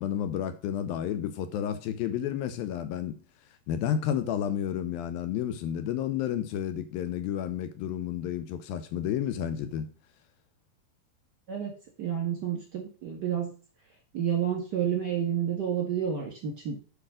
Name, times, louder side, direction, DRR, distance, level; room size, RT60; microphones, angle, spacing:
voice 1, 0.0-3.2 3.7-9.9, left 10 dB, 75° left, 2.3 m, -31 dB
voice 2, 12.0-13.5 14.1-16.8, right 9 dB, 45° right, 1.5 m, -30 dB
8.6 x 5.2 x 6.3 m
omnidirectional pair, 4.7 m